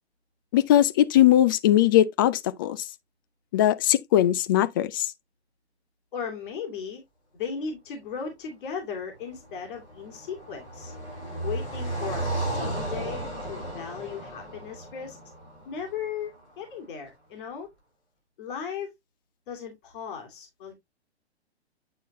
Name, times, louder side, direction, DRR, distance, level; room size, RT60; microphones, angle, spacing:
voice 1, 0.5-2.8 3.5-5.1, left 12 dB, 20° left, 0.3 m, -20 dB
voice 2, 6.1-7.0 7.3-10.9 11.4-15.2 15.6-17.7 18.4-18.9 19.5-20.7, left 6 dB, 50° left, 2.6 m, -36 dB
Car passing by, 9.2-16.4, right 1 dB, 90° left, 5.7 m, -34 dB
9.3 x 4.5 x 2.8 m
figure-of-eight pair, 120°, 33 cm